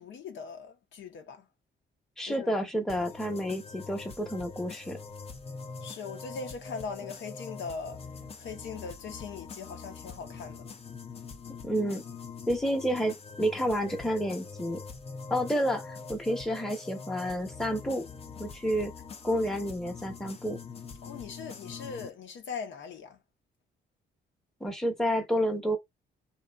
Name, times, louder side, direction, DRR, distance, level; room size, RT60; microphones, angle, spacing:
voice 1, 0.0-1.4 2.3-2.5 5.8-8.0 8.4-10.7 21.0-23.2, left 5 dB, 70° left, 0.7 m, -40 dB
voice 2, 2.2-5.0 11.6-12.0 12.5-14.8 15.3-18.0 18.4-18.9 19.2-20.6 24.6-25.8, equal, ahead, 0.8 m, -30 dB
sound 1, 2.9-22.1, left 5 dB, 30° left, 0.5 m, -44 dB
2.6 x 2.3 x 2.2 m
cardioid pair, 90°, 20 cm